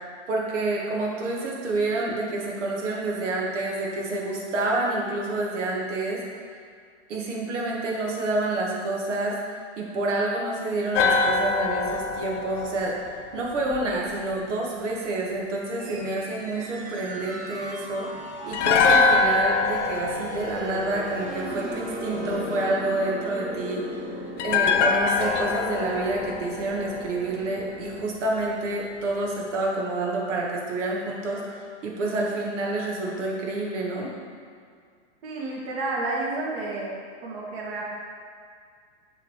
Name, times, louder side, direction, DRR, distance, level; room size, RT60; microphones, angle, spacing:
voice 1, 0.3-6.2 7.1-9.4 9.8-12.9 13.3-23.8 24.4-31.5 31.8-34.1, right 2 dB, 85° right, -2 dB, 1.9 m, -28 dB
sound 1, 10.9-14.1 18.5-21.7 24.4-27.6 27.9-28.0, left 4 dB, 75° left, 0.7 m, -24 dB
sound 2, 15.8-28.1, equal, 25° right, 1.1 m, -37 dB
voice 2, 35.2-36.9 37.2-37.8, right 2 dB, 55° right, -3 dB, 2.0 m, -30 dB
6.7 x 3.8 x 6.4 m, 2.1 s
supercardioid pair, 145°, 35 cm